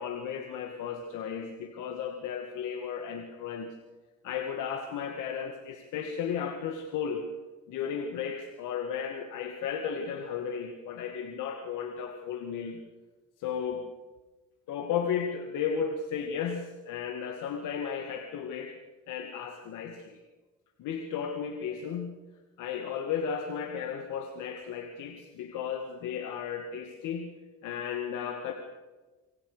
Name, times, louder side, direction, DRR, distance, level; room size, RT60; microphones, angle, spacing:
voice 1, 0.0-3.7 4.2-7.2 7.7-12.8 13.4-13.9 14.7-18.7 19.1-20.2 20.8-22.2 22.6-27.3 27.6-28.5, left 7 dB, 90° left, 4 dB, 2.3 m, -34 dB
28.0 x 25.0 x 5.2 m, 1.2 s
cardioid pair, 90°, 30 cm